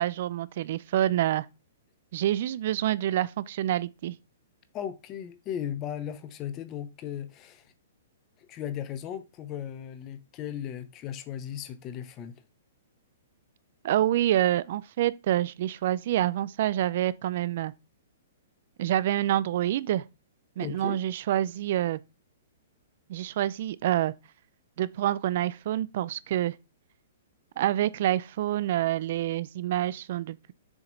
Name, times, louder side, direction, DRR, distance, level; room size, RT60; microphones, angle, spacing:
voice 1, 0.0-1.5 2.1-4.2 13.8-17.7 18.8-20.0 20.6-22.0 23.1-24.1 24.8-26.6 27.6-30.5, right 12 dB, 55° right, 0.4 m, -27 dB
voice 2, 4.7-7.7 8.4-12.3 20.6-21.0, left 10 dB, 25° left, 0.7 m, -36 dB
7.1 x 2.9 x 5.2 m
hypercardioid pair, 150°, 0 cm